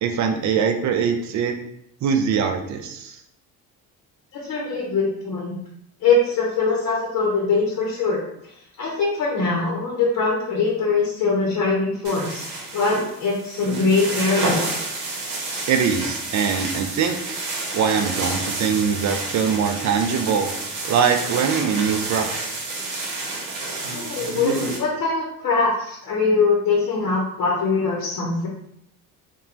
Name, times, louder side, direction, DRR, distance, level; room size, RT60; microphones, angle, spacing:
voice 1, 0.0-1.5 2.0-3.2 15.7-17.4 17.7-20.5 20.9-22.4, right 6 dB, 45° right, 6 dB, 0.5 m, -22 dB
voice 2, 4.3-5.6 6.0-8.2 8.8-12.4 12.7-14.7 23.9-24.5 24.8-28.5, left 4 dB, 45° left, -2 dB, 0.7 m, -22 dB
sound 1, 12.0-24.8, right 2 dB, 85° right, 0.8 m, -29 dB
3.0 x 2.2 x 2.4 m, 0.76 s
supercardioid pair, 80°, 39 cm